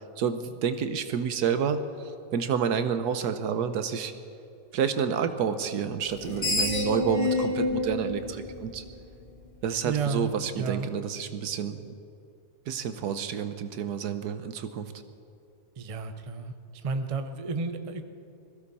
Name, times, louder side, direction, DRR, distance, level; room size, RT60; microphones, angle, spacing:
voice 1, 0.2-1.8 2.3-4.1 4.7-8.8 9.6-11.9 12.7-14.9, right 7 dB, 75° right, 10 dB, 1.3 m, -29 dB
Screech, 6.1-9.3, left 2 dB, 35° left, 1.9 m, -29 dB
voice 2, 9.8-10.3 10.6-10.9 15.8-16.5 16.8-18.0, right 5 dB, 35° right, 8 dB, 0.6 m, -31 dB
21.0 x 15.5 x 4.2 m, 2.6 s
omnidirectional pair, 1.8 m